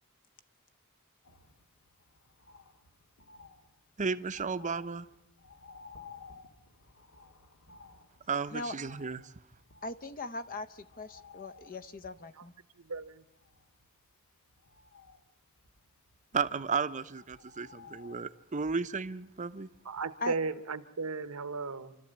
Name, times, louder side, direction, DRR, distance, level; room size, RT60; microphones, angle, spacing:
Bird, 1.2-20.4 20.7-20.8, left 5 dB, 65° left, 1.8 m, -57 dB
voice 1, 4.0-5.1 8.3-9.3 16.3-19.7, right 5 dB, 35° right, 0.7 m, -33 dB
voice 2, 9.8-12.5 20.2-20.3, left 2 dB, 40° left, 0.8 m, -39 dB
voice 3, 12.8-13.2 19.8-22.0, right 4 dB, 80° right, 1.1 m, -36 dB
28.0 x 13.0 x 8.7 m
head